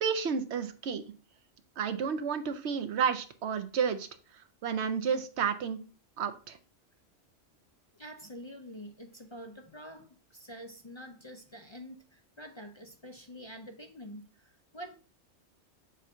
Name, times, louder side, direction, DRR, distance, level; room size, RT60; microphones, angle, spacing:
voice 1, 0.0-1.0 1.8-4.1 4.6-5.8 6.2-6.6, right 7 dB, 75° right, 1.0 m, -31 dB
voice 2, 7.9-14.9, equal, 35° left, 0.5 m, -47 dB
7.3 x 2.7 x 5.4 m
omnidirectional pair, 1.2 m